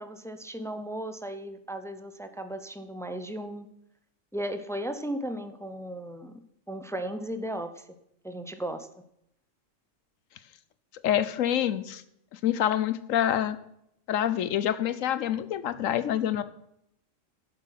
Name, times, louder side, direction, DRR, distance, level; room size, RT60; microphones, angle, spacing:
voice 1, 0.0-3.7 4.3-6.4 6.7-7.8 8.2-8.9, right 1 dB, 5° left, 9 dB, 0.3 m, -36 dB
voice 2, 11.0-12.0 12.3-13.6 14.1-16.4, left 10 dB, 85° left, 14 dB, 1.1 m, -26 dB
11.0 x 7.5 x 5.8 m, 0.77 s
omnidirectional pair, 1.3 m